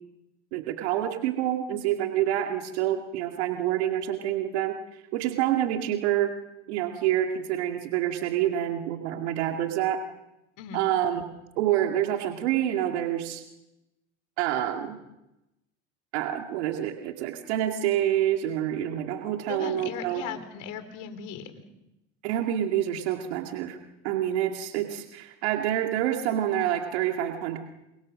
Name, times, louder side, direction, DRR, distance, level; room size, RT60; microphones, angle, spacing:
voice 1, 0.5-6.3 6.7-10.0 10.7-11.2 11.6-13.4 14.4-15.0 16.1-20.2 22.2-23.8 24.0-27.6, right 11 dB, 90° right, 3 dB, 2.4 m, -27 dB
voice 2, 19.5-21.6, left 8 dB, 70° left, 10 dB, 3.9 m, -38 dB
29.0 x 25.5 x 6.4 m, 0.92 s
supercardioid pair, 75°, 33 cm